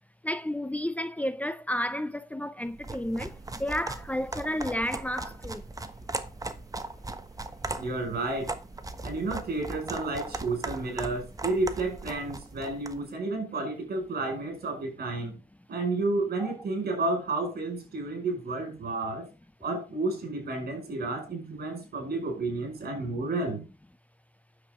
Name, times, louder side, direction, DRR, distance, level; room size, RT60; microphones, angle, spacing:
voice 1, 0.2-5.6 16.4-16.6, left 1 dB, 10° left, 0.6 m, -32 dB
sound 1, 2.7-13.0, right 2 dB, 20° right, 1.2 m, -38 dB
voice 2, 7.8-8.5 9.0-15.4 15.7-19.3 19.6-23.7, right 2 dB, 75° right, 5.4 m, -31 dB
9.9 x 7.5 x 3.7 m
cardioid pair, 95°, 16 cm